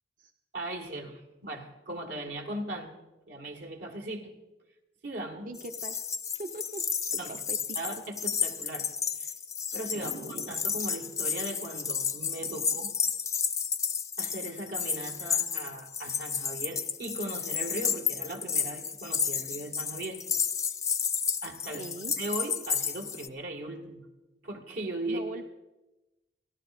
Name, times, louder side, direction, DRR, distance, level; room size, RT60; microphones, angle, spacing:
voice 1, 0.5-3.0 3.3-4.3 5.0-5.5 7.2-7.4 7.8-8.9 9.2-9.3 9.7-12.9 14.2-20.2 21.4-21.8 22.2-24.1 24.4-25.2, right 1 dB, 80° right, 3 dB, 1.8 m, -38 dB
voice 2, 5.4-6.0 6.3-6.9 7.3-7.6 9.9-10.7 12.4-12.9 21.7-22.1 25.1-25.4, right 2 dB, 45° right, 5 dB, 0.5 m, -41 dB
sound 1, 5.6-23.3, left 6 dB, 15° left, 0.4 m, -32 dB
28.0 x 11.5 x 2.5 m, 1.0 s
head